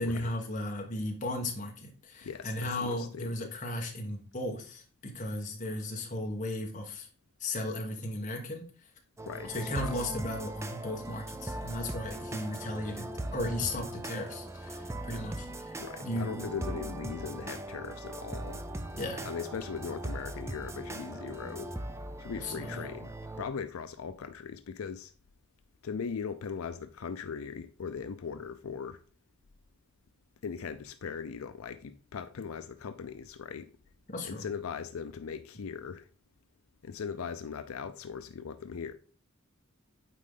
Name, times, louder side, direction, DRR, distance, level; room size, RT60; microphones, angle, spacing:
voice 1, 0.0-7.1 7.4-8.7 9.4-16.5 18.9-19.3 22.4-22.9 34.1-34.5, left 1 dB, 35° left, 1.4 m, -36 dB
voice 2, 2.2-3.5 9.3-10.0 15.8-18.6 19.2-21.8 22.2-23.1 23.4-25.1 25.8-29.0 30.4-33.7 34.2-36.1 36.8-38.9, left 6 dB, 85° left, 0.5 m, -39 dB
sound 1, 9.2-23.5, right 1 dB, 15° right, 0.4 m, -40 dB
9.1 x 3.7 x 3.7 m
head